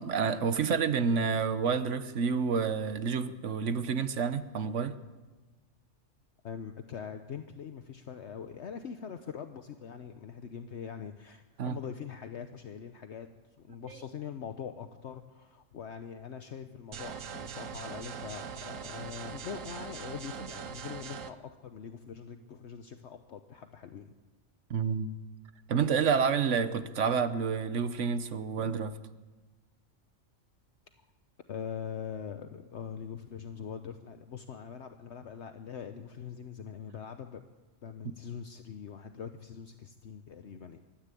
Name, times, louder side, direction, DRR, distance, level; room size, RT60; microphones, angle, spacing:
voice 1, 0.0-4.9 11.6-11.8 24.7-25.1 25.7-29.0, right 6 dB, 70° right, 12 dB, 1.3 m, -29 dB
voice 2, 6.4-13.3 13.6-24.1 31.5-37.4 37.8-40.8, left 7 dB, 65° left, 8 dB, 1.1 m, -43 dB
sound 1, 16.9-21.3, right 7 dB, 90° right, 1.4 m, -41 dB
23.0 x 13.5 x 8.3 m, 1.3 s
omnidirectional pair, 1.3 m